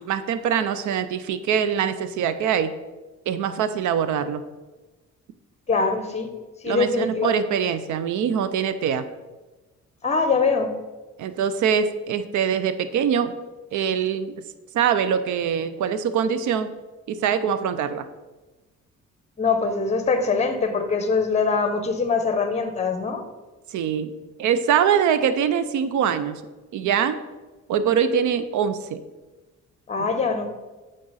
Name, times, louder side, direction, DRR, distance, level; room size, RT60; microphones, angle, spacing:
voice 1, 0.0-2.7 3.3-4.4 6.6-9.1 11.2-13.3 13.7-14.3 14.7-16.7 17.1-18.1 23.7-24.1 24.4-26.4 26.7-27.2 27.7-29.0 30.0-30.1, right 8 dB, 75° right, 12 dB, 0.6 m, -23 dB
voice 2, 5.7-6.3 6.6-7.3 10.0-10.7 19.4-23.2 29.9-30.5, left 4 dB, 20° left, 8 dB, 0.8 m, -23 dB
8.5 x 3.8 x 4.1 m, 1.2 s
cardioid pair, 90°, 30 cm